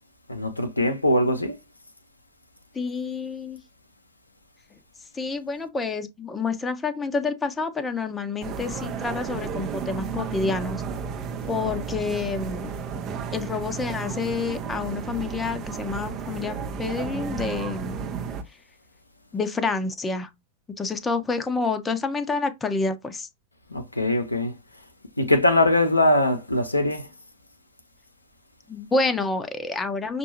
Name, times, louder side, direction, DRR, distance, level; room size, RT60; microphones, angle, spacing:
voice 1, 0.3-1.6 23.7-24.5 25.2-27.0, left 1 dB, 85° left, 0.6 m, -21 dB
voice 2, 2.7-3.6 5.1-10.8 11.5-12.7 13.3-18.0 19.3-20.3 20.8-23.3 28.7-30.2, left 4 dB, 15° left, 0.6 m, -28 dB
sound 1, 8.4-18.4, right 6 dB, 35° right, 0.6 m, -33 dB
6.0 x 2.4 x 2.9 m
figure-of-eight pair, 90°, 0 cm